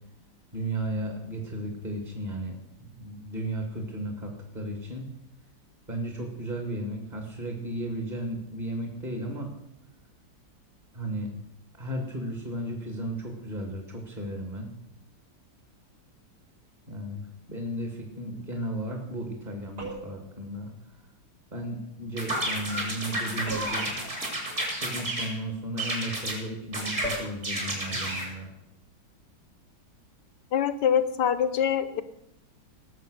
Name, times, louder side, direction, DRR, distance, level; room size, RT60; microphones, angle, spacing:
voice 1, 0.5-5.1 5.9-9.5 10.9-11.3 11.7-14.7 16.9-17.2 17.5-20.7 21.5-24.0 24.7-28.5, right 1 dB, 25° right, 2 dB, 2.2 m, -34 dB
sound 1, 19.8-20.3 23.5-23.9 27.0-27.4, equal, 60° right, 6.5 m, -36 dB
sound 2, 22.2-25.3 25.8-26.4 26.7-28.3, right 1 dB, 40° right, 4.0 m, -31 dB
voice 2, 30.5-32.0, left 8 dB, 70° left, 13 dB, 1.3 m, -24 dB
18.5 x 7.6 x 6.6 m, 0.84 s
omnidirectional pair, 2.0 m